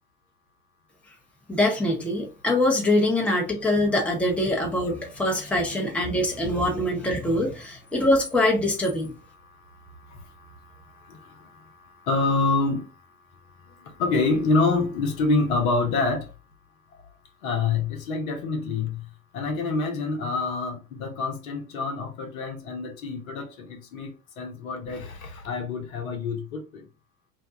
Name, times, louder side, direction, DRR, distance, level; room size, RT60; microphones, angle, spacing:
voice 1, 1.5-9.1, left 1 dB, 5° left, 0.9 m, -23 dB
voice 2, 12.1-12.8 14.0-16.3 17.4-19.0 19.3-26.8, left 3 dB, 65° left, 0.9 m, -26 dB
2.8 x 2.2 x 3.6 m
figure-of-eight pair, 70°, 44 cm